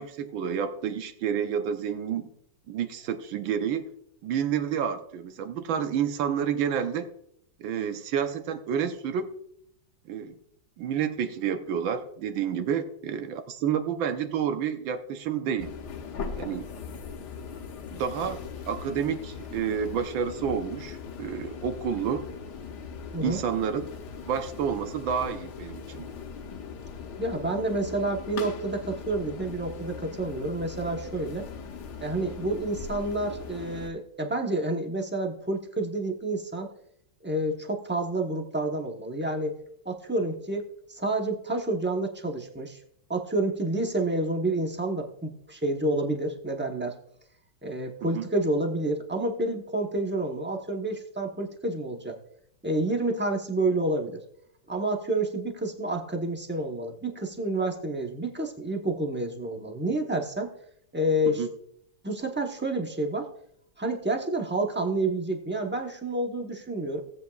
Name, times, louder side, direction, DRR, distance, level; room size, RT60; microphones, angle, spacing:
voice 1, 0.0-2.3 2.7-3.8 4.2-7.1 7.6-9.3 10.1-10.3 10.8-15.7 16.4-16.6 17.9-22.2 23.2-23.9 24.2-26.1 48.1-48.3 61.4-61.5, right 8 dB, 90° right, 8 dB, 1.6 m, -29 dB
sound 1, 15.6-33.9, left 6 dB, 65° left, 1.3 m, -40 dB
voice 2, 27.2-31.4 32.0-36.7 37.2-39.5 39.8-42.8 43.1-47.0 47.6-52.2 52.6-54.2 54.7-60.5 60.9-61.5 62.0-63.3 63.8-67.0, right 2 dB, 15° right, 2 dB, 0.3 m, -29 dB
17.5 x 8.1 x 2.4 m, 0.72 s
omnidirectional pair, 2.1 m